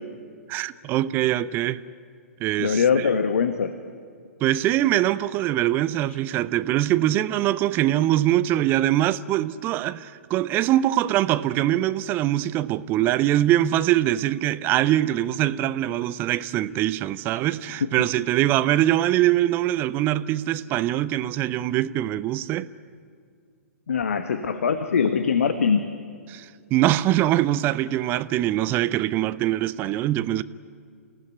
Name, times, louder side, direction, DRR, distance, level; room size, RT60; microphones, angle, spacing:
voice 1, 0.5-1.8 2.4-3.1 4.4-22.7 26.3-30.4, right 13 dB, 25° right, 0.5 m, -23 dB
voice 2, 2.6-3.7 17.8-17.9 23.9-25.8, left 6 dB, 60° left, 1.1 m, -22 dB
28.0 x 16.0 x 9.7 m
figure-of-eight pair, 115°, 8 cm